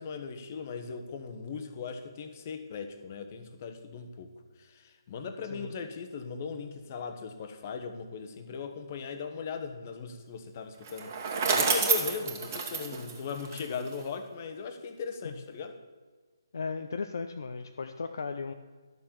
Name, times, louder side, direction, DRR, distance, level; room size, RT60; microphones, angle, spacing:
voice 1, 0.0-4.3 4.6-11.2 11.4-15.8, left 5 dB, 35° left, 7 dB, 1.1 m, -38 dB
Bicycle, 10.8-14.0, right 5 dB, 35° right, 1.8 m, -29 dB
voice 2, 16.5-18.5, left 4 dB, 55° left, 6 dB, 0.6 m, -36 dB
11.5 x 6.8 x 7.2 m, 1.4 s
figure-of-eight pair, 145°, 2 cm